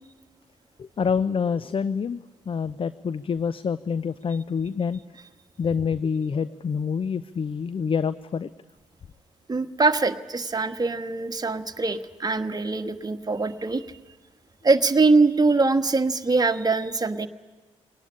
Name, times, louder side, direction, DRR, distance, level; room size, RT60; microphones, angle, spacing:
voice 1, 0.8-2.2 2.5-5.0 5.6-8.5, left 6 dB, 35° left, 16 dB, 0.6 m, -27 dB
voice 2, 9.5-13.9 14.6-17.3, right 3 dB, 25° right, 7 dB, 1.4 m, -23 dB
21.0 x 19.0 x 9.9 m, 1.3 s
hypercardioid pair, 45°, 15 cm